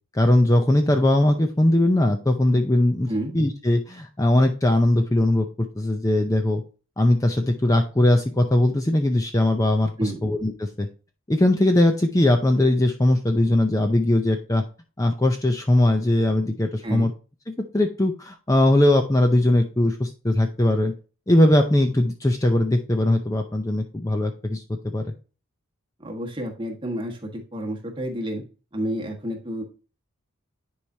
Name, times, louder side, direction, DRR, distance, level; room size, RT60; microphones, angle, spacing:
voice 1, 0.1-6.6 7.0-10.9 11.3-14.6 15.0-17.1 17.7-20.9 21.3-24.6 24.9-25.0, left 1 dB, 15° left, 5 dB, 0.5 m, -20 dB
voice 2, 26.0-28.4 28.7-29.6, right 1 dB, 25° right, 1 dB, 1.4 m, -30 dB
10.5 x 4.7 x 2.7 m, 0.34 s
head